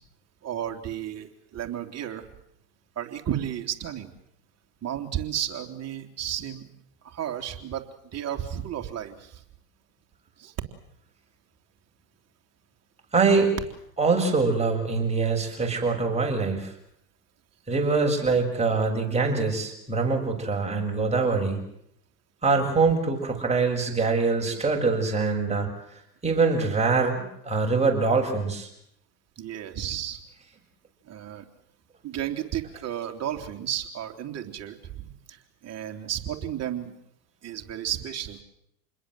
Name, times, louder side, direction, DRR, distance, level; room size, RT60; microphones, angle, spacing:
voice 1, 0.4-2.3 3.0-4.1 4.8-6.7 7.0-9.4 10.4-10.5 29.4-30.2 31.1-31.5 32.0-36.9 37.4-38.4, right 10 dB, 35° right, 4 dB, 3.5 m, -33 dB
voice 2, 13.1-13.5 14.0-16.7 17.7-21.6 22.4-25.7 26.2-28.7, right 4 dB, 15° right, 1 dB, 7.1 m, -24 dB
27.5 x 21.5 x 7.9 m, 0.75 s
hypercardioid pair, 100°, 47 cm